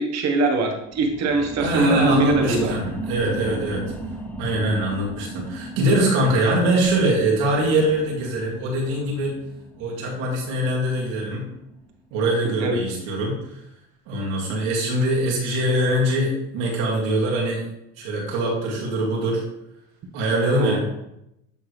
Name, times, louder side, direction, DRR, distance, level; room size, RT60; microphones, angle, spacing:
voice 1, 0.0-2.7 12.6-12.8 20.6-20.8, right 3 dB, 50° right, 4 dB, 1.3 m, -22 dB
sound 1, 0.8-12.0 12.4-12.5, right 1 dB, 5° left, 0.6 m, -37 dB
voice 2, 1.6-3.8 4.4-9.4 9.8-11.5 12.1-13.4 14.1-17.6 18.0-19.4 20.1-20.8, right 1 dB, 75° right, -3 dB, 2.2 m, -23 dB
9.1 x 3.6 x 3.2 m, 0.84 s
supercardioid pair, 105°, 34 cm